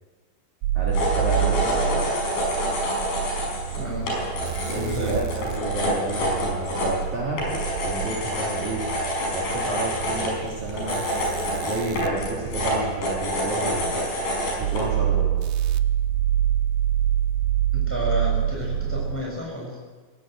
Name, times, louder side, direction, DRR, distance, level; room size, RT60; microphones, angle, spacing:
sound 1, 0.6-19.2, right 10 dB, 80° right, 2.4 m, -27 dB
voice 1, 0.7-2.1 4.7-7.4 7.8-8.8 9.3-11.0 11.6-14.0 14.6-15.3, right 2 dB, 40° right, -3 dB, 4.1 m, -30 dB
sound 2, 0.9-14.9, equal, 55° left, 7.1 m, -27 dB
voice 2, 3.8-4.1 4.7-5.2 17.7-19.8, left 1 dB, 5° left, -3 dB, 6.2 m, -31 dB
19.5 x 17.0 x 7.8 m, 1.4 s
omnidirectional pair, 5.5 m